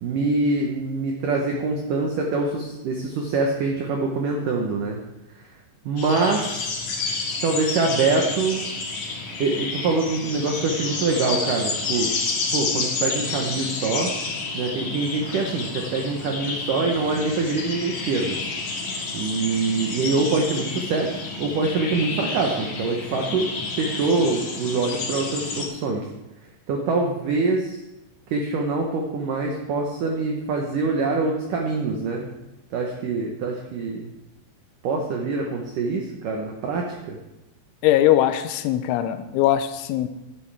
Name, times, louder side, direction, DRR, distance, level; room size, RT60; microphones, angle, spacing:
voice 1, 0.0-5.0 5.9-6.7 7.4-8.6 9.1-12.1 12.5-14.1 14.5-18.4 19.1-23.5 23.8-26.1 26.7-27.8 28.3-32.3 32.7-34.1 34.8-37.2, right 3 dB, 90° right, 1 dB, 1.8 m, -24 dB
sound 1, 6.0-25.7, left 4 dB, 50° left, 2.6 m, -30 dB
voice 2, 37.8-40.1, left 12 dB, 90° left, 10 dB, 3.1 m, -20 dB
13.0 x 10.5 x 3.4 m, 0.95 s
omnidirectional pair, 5.4 m